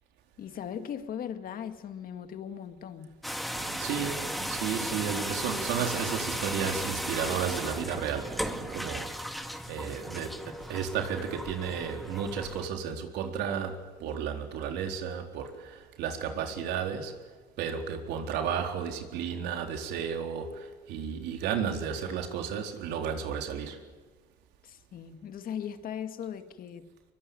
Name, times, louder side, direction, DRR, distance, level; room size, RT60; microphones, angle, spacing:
voice 1, 0.4-3.2 24.6-26.9, left 8 dB, 60° left, 2.2 m, -38 dB
sound 1, 3.2-12.7, equal, ahead, 2.0 m, -36 dB
Mechanisms, 3.6-9.0, right 7 dB, 50° right, 1.5 m, -44 dB
voice 2, 3.8-9.1 9.7-17.2 17.6-23.8, right 7 dB, 85° right, 4.0 m, -33 dB
23.5 x 23.5 x 9.5 m
cardioid pair, 110°, 17 cm